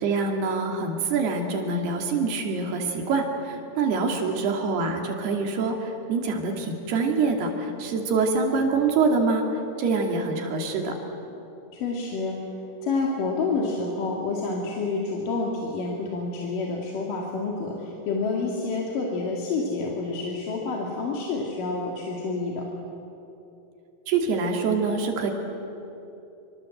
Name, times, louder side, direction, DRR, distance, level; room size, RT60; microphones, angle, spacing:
voice 1, 0.0-9.5 9.8-11.0 24.1-25.3, right 4 dB, 80° right, 2 dB, 4.6 m, -25 dB
voice 2, 11.7-12.4 12.8-22.7, left 3 dB, 60° left, -2 dB, 3.7 m, -28 dB
26.5 x 25.5 x 8.0 m, 3.0 s
omnidirectional pair, 4.6 m